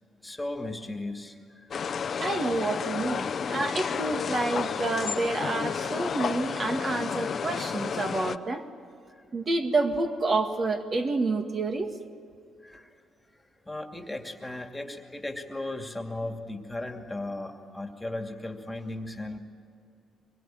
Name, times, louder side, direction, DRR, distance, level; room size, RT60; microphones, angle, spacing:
voice 1, 0.2-1.4 12.6-12.9 13.7-19.4, left 2 dB, 10° left, 4 dB, 2.4 m, -36 dB
sound 1, 1.7-8.4, left 6 dB, 50° left, 0.8 m, -31 dB
voice 2, 2.2-8.6 9.3-11.9, right 3 dB, 45° right, 4 dB, 2.0 m, -28 dB
24.5 x 22.5 x 9.1 m, 2.5 s
cardioid pair, 90°, 0 cm